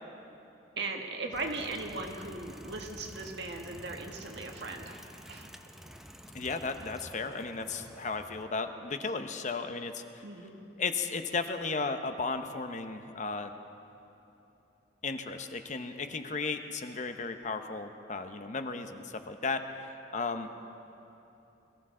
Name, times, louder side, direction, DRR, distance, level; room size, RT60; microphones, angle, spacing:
voice 1, 0.8-5.0 5.3-5.5 5.9-6.0 10.2-10.6, right 3 dB, 70° right, 2 dB, 1.5 m, -38 dB
sound 1, 1.3-8.4, equal, ahead, 0.6 m, -50 dB
voice 2, 6.3-10.2 10.8-13.5 15.0-20.5, left 4 dB, 45° left, 7 dB, 0.7 m, -35 dB
22.5 x 14.5 x 3.8 m, 3.0 s
head